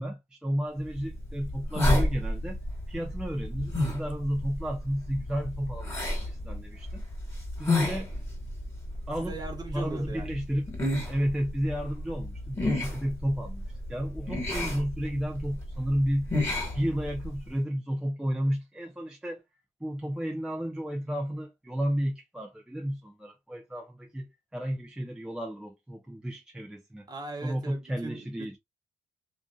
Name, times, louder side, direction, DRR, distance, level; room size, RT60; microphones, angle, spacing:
voice 1, 0.0-2.6 2.9-5.9 6.3-7.1 7.6-8.1 9.1-9.4 9.7-10.7 11.1-16.3 16.7-19.4 19.8-27.1 27.4-28.6, equal, 5° right, 0.5 m, -32 dB
sound 1, 0.9-17.5, left 1 dB, 20° left, 1.6 m, -32 dB
voice 2, 9.2-10.3 27.1-28.6, right 3 dB, 30° right, 1.1 m, -39 dB
2.5 x 2.5 x 2.3 m
cardioid pair, 95°, 13 cm